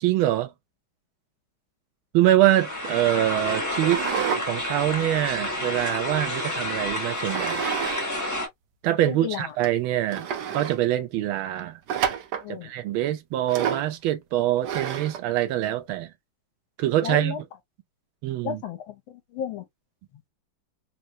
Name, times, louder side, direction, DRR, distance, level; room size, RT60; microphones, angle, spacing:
voice 1, 0.0-0.5 2.1-4.0 4.5-7.6 8.8-10.3 10.5-11.8 12.5-16.1 16.8-17.4 18.2-18.6, right 13 dB, 80° right, 1.4 m, -24 dB
sound 1, 2.4-8.5, left 1 dB, 20° left, 0.5 m, -30 dB
sound 2, 3.8-4.5 4.9-6.2 7.3-8.1 8.3-8.4 9.1-9.2 9.6-9.7 10.1-10.8 11.9-12.5 13.5-13.9 14.6-15.2, right 8 dB, 65° right, 1.1 m, -29 dB
voice 2, 9.1-9.5 12.4-12.7 17.0-17.4 18.4-18.9 19.3-19.6, left 8 dB, 80° left, 1.5 m, -32 dB
4.2 x 2.1 x 2.4 m
omnidirectional pair, 2.2 m